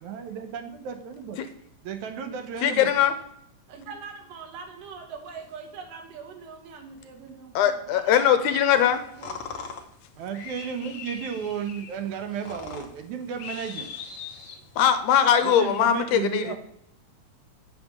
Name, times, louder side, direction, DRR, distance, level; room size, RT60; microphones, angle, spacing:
voice 1, 0.0-1.4 1.8-2.9 10.2-13.9 15.4-16.6, right 7 dB, 70° right, 7 dB, 2.1 m, -33 dB
voice 2, 2.6-3.1 7.6-9.0 14.8-16.6, left 9 dB, 75° left, 9 dB, 2.2 m, -21 dB
voice 3, 3.7-9.6 15.2-15.7, right 5 dB, 90° right, 4 dB, 3.1 m, -43 dB
sound 1, 8.7-15.0, left 5 dB, 60° left, 1.3 m, -41 dB
8.1 x 5.0 x 7.4 m, 0.75 s
omnidirectional pair, 3.7 m